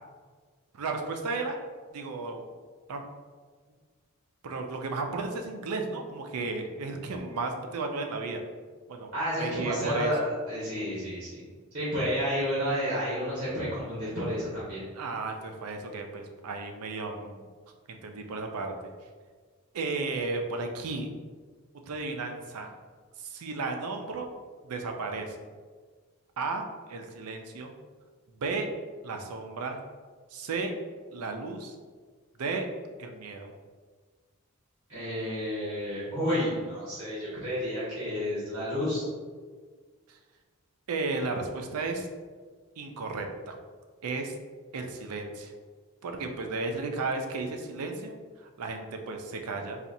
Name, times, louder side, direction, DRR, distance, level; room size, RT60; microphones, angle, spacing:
voice 1, 0.7-1.6 1.9-2.5 2.9-3.0 4.4-8.4 8.9-9.1 9.4-10.1 14.9-17.4 17.9-18.7 19.7-21.1 21.9-22.7 23.2-24.3 24.6-25.4 26.4-27.7 28.4-28.7 29.0-29.8 30.3-30.7 31.1-31.8 32.4-32.7 33.0-33.5 40.1-40.2 40.9-42.1 42.8-43.6 44.0-44.3 44.7-45.5 46.0-48.2 48.6-49.8, right 3 dB, 90° right, 4 dB, 0.4 m, -34 dB
voice 2, 9.1-11.4 11.7-14.8 34.9-39.0, equal, 50° right, -9 dB, 1.2 m, -31 dB
4.1 x 2.4 x 2.6 m, 1.5 s
head